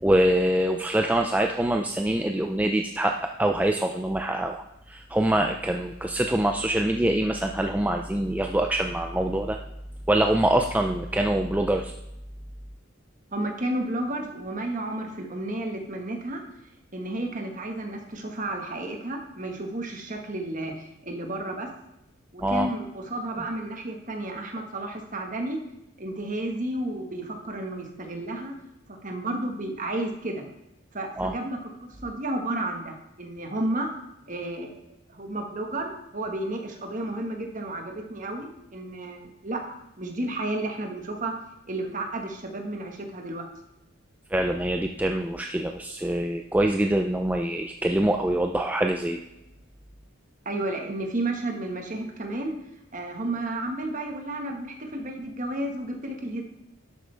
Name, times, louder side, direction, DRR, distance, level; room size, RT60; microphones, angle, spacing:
voice 1, 0.0-9.6 10.1-11.9 22.4-22.7 31.2-31.3 44.3-49.2, right 1 dB, 5° right, 4 dB, 0.4 m, -24 dB
voice 2, 13.3-16.4 16.9-21.7 22.3-25.6 26.0-28.5 28.9-30.4 30.9-31.7 32.0-33.9 34.3-34.8 35.1-39.6 40.0-41.3 41.7-43.4 50.4-52.6 52.9-56.4, right 1 dB, 40° right, 3 dB, 1.5 m, -32 dB
11.5 x 8.2 x 3.4 m, 0.87 s
head